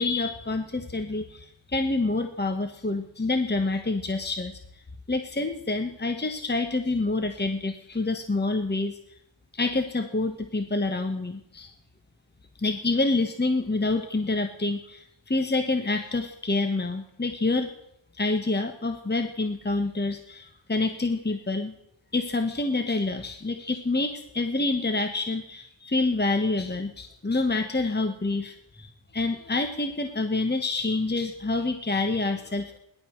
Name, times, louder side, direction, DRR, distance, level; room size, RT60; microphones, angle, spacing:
voice 1, 0.0-4.6 5.1-9.0 9.5-11.7 12.6-17.7 18.1-21.7 22.1-32.8, left 2 dB, 20° left, 7 dB, 1.3 m, -27 dB
17.0 x 11.5 x 6.4 m, 0.80 s
wide cardioid pair, 70°, 49 cm